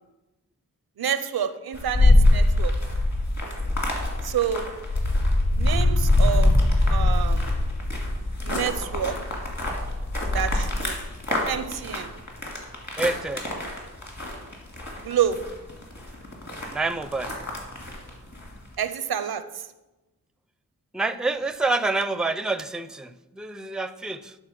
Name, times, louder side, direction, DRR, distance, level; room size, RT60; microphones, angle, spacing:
voice 1, 1.0-2.7 4.2-4.7 5.6-6.5 6.9-7.5 8.4-9.2 10.3-11.0 11.4-12.1 15.0-15.4 18.8-19.6, right 9 dB, 90° right, 12 dB, 0.6 m, -28 dB
sound 1, 1.7-18.6, left 1 dB, 45° left, 2.6 m, -23 dB
voice 2, 13.0-13.5 16.7-17.4 20.9-24.4, right 3 dB, ahead, 12 dB, 0.4 m, -27 dB
11.0 x 4.0 x 5.8 m, 1.1 s
cardioid pair, 40°, 36 cm